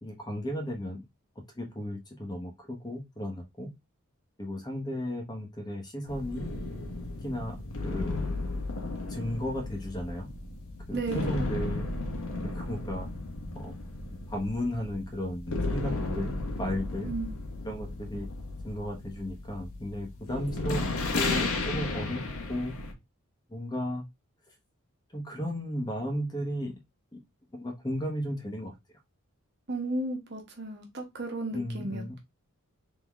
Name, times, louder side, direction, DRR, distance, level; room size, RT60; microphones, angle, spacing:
voice 1, 0.0-1.0 1.6-3.7 4.4-6.5 7.2-7.6 7.8-8.3 9.1-10.3 10.9-11.9 12.4-13.1 13.5-13.8 14.3-17.1 17.6-18.3 18.6-20.8 21.1-22.2 22.5-22.7 23.5-24.0 25.1-26.7 27.1-27.2 27.5-28.7 31.5-32.2, equal, 20° left, 1.0 m, -34 dB
sound 1, 6.1-22.9, left 2 dB, 90° left, 1.4 m, -34 dB
voice 2, 10.9-11.4 17.0-17.4 29.7-32.2, right 2 dB, 50° right, 1.3 m, -34 dB
3.8 x 3.8 x 3.5 m
head